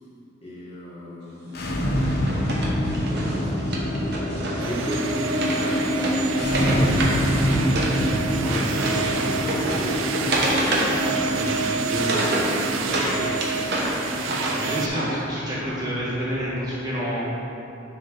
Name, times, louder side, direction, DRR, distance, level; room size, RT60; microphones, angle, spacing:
voice 1, 0.4-7.5 10.4-14.8 15.2-15.3, equal, 30° left, -8 dB, 1.3 m, -36 dB
sound 1, 1.5-16.4, equal, 50° left, 0.7 m, -26 dB
Wood, 1.9-8.0 8.2-13.1 13.4-15.1, right 1 dB, 55° right, 1.0 m, -29 dB
sound 2, 4.6-14.9, right 5 dB, 80° right, 0.4 m, -30 dB
voice 2, 8.4-9.2 12.9-13.1 14.6-15.0 15.3-17.2, equal, 20° right, -9 dB, 1.5 m, -29 dB
9.4 x 3.8 x 3.9 m, 2.8 s
head